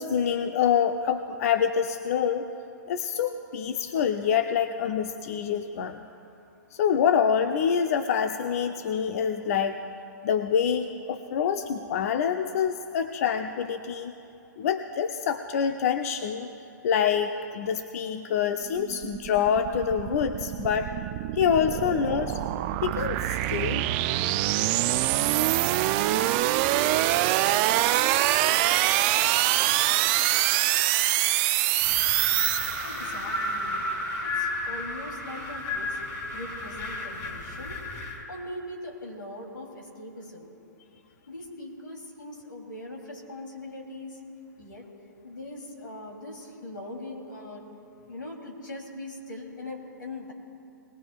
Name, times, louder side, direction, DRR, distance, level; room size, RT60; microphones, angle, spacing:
voice 1, 0.0-2.5 2.9-6.0 6.7-9.8 10.2-14.1 14.6-16.5 16.8-20.9 21.3-22.4 22.8-23.8, left 7 dB, 50° left, 8 dB, 0.5 m, -26 dB
sound 1, 18.7-33.2, right 15 dB, 30° right, 0.4 m, -25 dB
Wind, 31.8-38.2, left 2 dB, 30° left, 2.3 m, -33 dB
voice 2, 32.8-33.8 34.2-36.0 36.3-37.8 38.3-40.5 41.3-44.2 44.6-44.9 45.2-47.7 48.1-50.3, left 1 dB, 90° left, -1 dB, 3.0 m, -41 dB
20.5 x 17.5 x 2.4 m, 2.7 s
hypercardioid pair, 130°, 10 cm